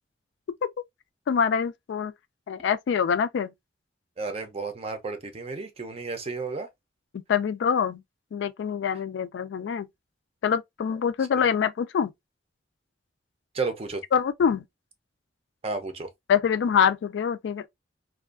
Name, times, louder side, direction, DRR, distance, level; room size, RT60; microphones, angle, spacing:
voice 1, 1.3-2.1 2.5-3.5 7.1-8.0 8.3-9.9 10.4-12.1 14.1-14.7 16.3-17.7, left 7 dB, 75° left, 0.3 m, -25 dB
voice 2, 4.2-6.7 13.5-14.0 15.6-16.1, right 4 dB, 35° right, 0.5 m, -32 dB
2.5 x 2.3 x 2.3 m
head